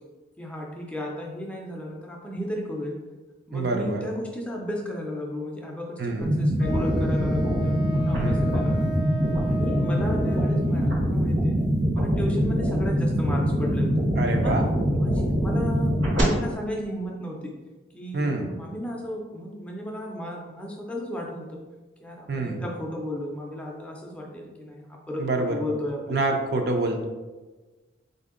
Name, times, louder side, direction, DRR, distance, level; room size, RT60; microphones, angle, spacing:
voice 1, 0.4-3.0 3.5-9.0 9.5-11.6 11.9-14.0 14.4-14.7 14.9-17.5 17.9-21.6 22.0-26.2, left 1 dB, 5° left, -1 dB, 0.4 m, -34 dB
voice 2, 3.5-4.0 6.0-6.4 8.2-8.5 14.2-14.7 18.1-18.5 22.3-22.6 25.2-25.6 26.1-27.1, right 2 dB, 55° right, 3 dB, 0.5 m, -26 dB
sound 1, 6.2-16.2, equal, 75° right, 1.1 m, -24 dB
Wind instrument woodwind instrument, 6.6-11.0, equal, 55° left, 0.6 m, -36 dB
4.1 x 2.7 x 3.7 m, 1.2 s
head